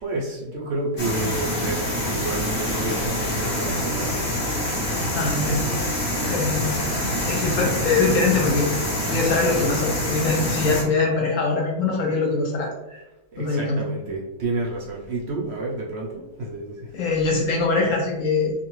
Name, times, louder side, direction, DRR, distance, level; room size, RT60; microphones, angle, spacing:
voice 1, 0.0-4.4 6.5-7.0 13.3-17.1, right 2 dB, 60° right, -3 dB, 0.7 m, -30 dB
sound 1, 1.0-10.8, left 1 dB, 35° left, 0.9 m, -26 dB
voice 2, 5.1-5.7 6.2-6.8 7.3-8.7 9.1-13.0 13.4-13.9 16.9-18.5, left 3 dB, 65° left, -1 dB, 0.9 m, -23 dB
2.6 x 2.4 x 3.1 m, 1.0 s
omnidirectional pair, 1.6 m